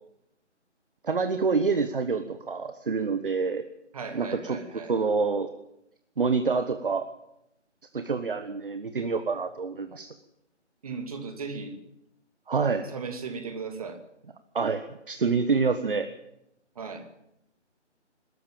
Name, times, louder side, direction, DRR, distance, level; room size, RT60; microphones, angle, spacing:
voice 1, 1.0-3.7 4.1-4.6 4.9-5.5 6.2-7.1 7.9-10.1 12.5-12.9 14.5-16.1, right 4 dB, 45° right, 10 dB, 1.3 m, -27 dB
voice 2, 3.9-4.9 10.8-11.7 12.9-14.0 16.7-17.1, right 4 dB, 30° right, 5 dB, 2.8 m, -37 dB
22.5 x 13.5 x 9.0 m, 0.82 s
figure-of-eight pair, 155°, 36 cm